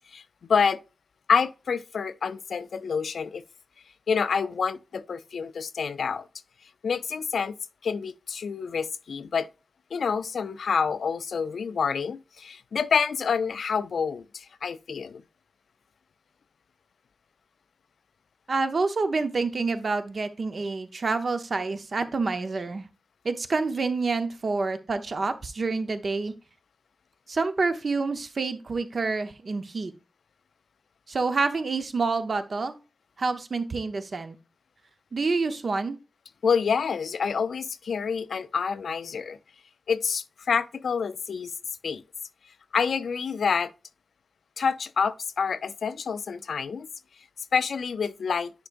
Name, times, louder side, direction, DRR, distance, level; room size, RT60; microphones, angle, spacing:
voice 1, 1.3-3.4 4.1-6.3 6.8-7.5 7.8-9.5 9.9-15.2 36.4-39.4 39.9-41.5 41.8-42.0 42.7-43.7 44.6-46.9 47.5-48.5, left 6 dB, 70° left, 0.4 m, -27 dB
voice 2, 18.5-22.8 23.2-26.3 27.3-29.9 31.1-32.8 33.2-34.4 35.1-36.0, right 4 dB, 40° right, 0.8 m, -28 dB
10.0 x 4.7 x 2.5 m
wide cardioid pair, 180°, 0 cm